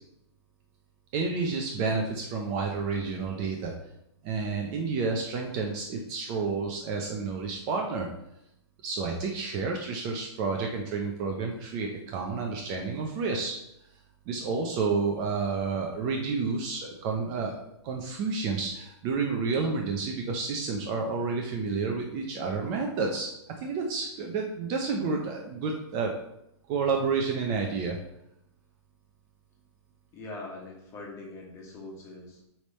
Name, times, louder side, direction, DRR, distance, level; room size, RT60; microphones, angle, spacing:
voice 1, 1.1-3.7 4.2-8.1 8.8-13.5 14.3-23.3 23.6-26.1 26.7-28.0, right 4 dB, 25° right, 1 dB, 0.6 m, -30 dB
voice 2, 30.1-32.4, left 2 dB, 20° left, -1 dB, 1.5 m, -42 dB
8.7 x 3.4 x 4.3 m, 0.82 s
hypercardioid pair, 160°, 15 cm